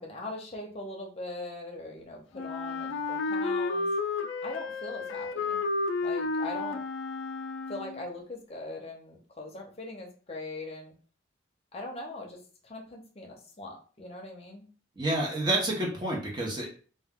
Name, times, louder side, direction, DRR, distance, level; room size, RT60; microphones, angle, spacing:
voice 1, 0.0-3.9 4.4-5.6 6.0-6.8 7.7-10.9 11.7-14.7, left 2 dB, 30° left, -1 dB, 0.6 m, -41 dB
Wind instrument woodwind instrument, 2.3-8.1, left 3 dB, 80° left, 0.3 m, -32 dB
voice 2, 15.0-16.7, right 1 dB, 20° right, -2 dB, 0.7 m, -29 dB
2.2 x 2.2 x 3.5 m, 0.39 s
head